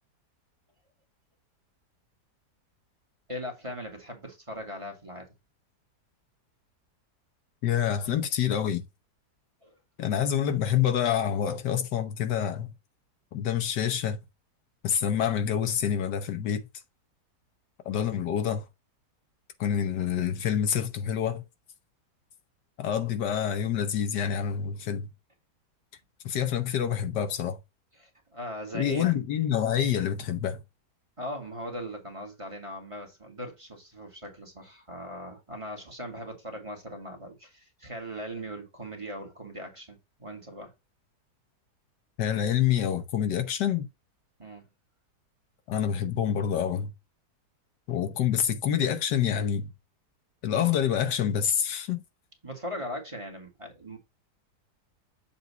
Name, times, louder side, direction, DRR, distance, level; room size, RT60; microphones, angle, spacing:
voice 1, 3.3-5.3 9.6-9.7 28.0-29.1 31.2-40.7 44.4-44.6 52.4-54.0, equal, 20° right, 1.4 m, -39 dB
voice 2, 7.6-8.8 10.0-12.7 13.3-14.2 14.8-16.6 17.8-18.6 19.6-21.4 22.8-25.1 26.2-27.6 28.7-30.6 42.2-43.9 45.7-46.9 47.9-49.7 50.4-52.0, left 9 dB, 85° left, 1.6 m, -27 dB
7.2 x 2.7 x 5.4 m
omnidirectional pair, 1.8 m